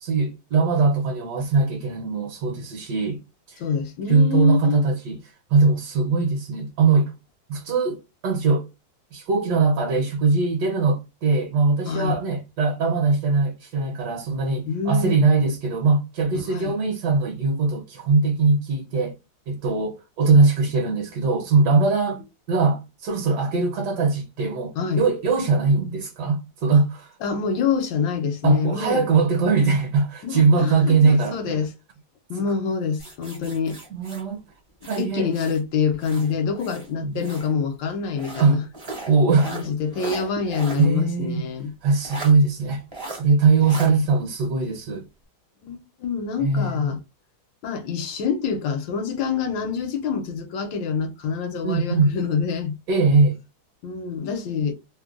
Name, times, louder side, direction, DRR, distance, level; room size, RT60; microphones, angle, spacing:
voice 1, 0.0-3.2 3.5-3.6 4.1-7.1 7.5-8.7 9.1-19.2 19.5-27.1 28.4-31.6 33.9-34.4 34.8-35.3 37.0-37.1 38.4-38.6 39.1-39.5 40.8-41.5 41.8-42.8 43.1-45.0 46.4-46.9 51.6-52.2 52.9-53.4, right 4 dB, 65° right, 1.2 m, -21 dB
voice 2, 3.6-4.8 11.8-12.1 14.7-15.2 16.4-16.7 24.7-25.0 27.2-29.1 30.2-31.7 32.3-33.8 35.0-38.6 39.4-41.7 43.9-44.1 45.6-47.0 47.6-52.8 53.8-54.7, left 6 dB, 80° left, 1.3 m, -26 dB
sound 1, 33.0-35.6 36.0-37.5 38.2-40.9 41.2-41.3 42.0-42.3 42.9-43.2 43.6-43.9, right 2 dB, 40° right, 0.4 m, -37 dB
3.2 x 2.1 x 2.3 m
omnidirectional pair, 2.1 m